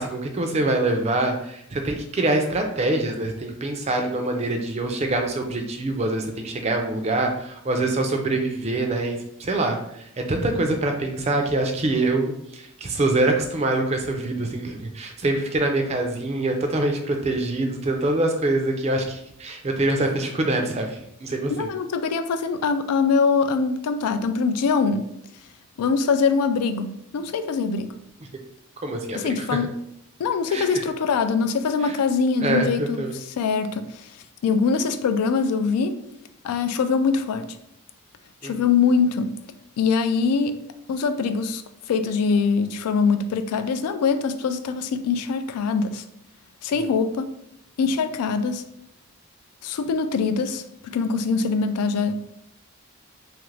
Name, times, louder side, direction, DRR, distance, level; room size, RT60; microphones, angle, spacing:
voice 1, 0.0-21.7 28.8-29.6 30.5-30.7 31.8-31.9 32.4-33.1 38.4-38.6, right 2 dB, 30° right, 0.4 m, -25 dB
voice 2, 21.5-25.1 25.8-28.0 29.1-29.8 30.2-33.0 33.4-34.1 34.4-36.0 36.4-37.6 38.4-39.3 39.8-40.6 40.9-41.6 41.9-46.0 46.6-47.3 47.8-48.6 49.6-52.1, left 5 dB, 90° left, 0.3 m, -23 dB
2.9 x 2.4 x 3.2 m
head